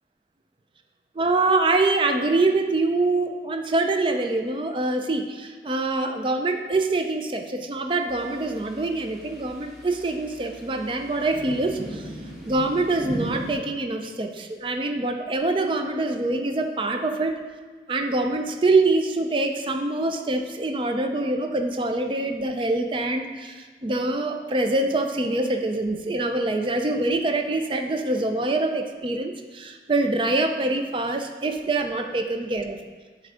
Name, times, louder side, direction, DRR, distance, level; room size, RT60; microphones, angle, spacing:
voice 1, 1.2-12.0 12.4-17.4 17.9-32.8, right 2 dB, 30° right, 5 dB, 0.4 m, -25 dB
sound 1, 8.1-13.5, right 1 dB, ahead, 1.4 m, -38 dB
7.6 x 3.5 x 4.9 m, 1.4 s
head